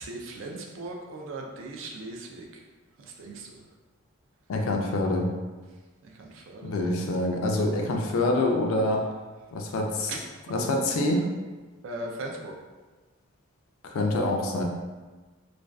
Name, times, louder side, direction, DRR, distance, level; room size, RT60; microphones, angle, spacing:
voice 1, 0.0-2.6 3.0-3.6 6.0-6.9 10.1-10.2 11.8-12.5, right 2 dB, 70° right, 1 dB, 0.4 m, -38 dB
voice 2, 4.5-5.3 6.6-9.1 9.5-10.1 10.5-11.3 13.8-14.6, left 2 dB, 85° left, 2 dB, 0.4 m, -26 dB
2.4 x 2.3 x 2.2 m, 1.3 s
head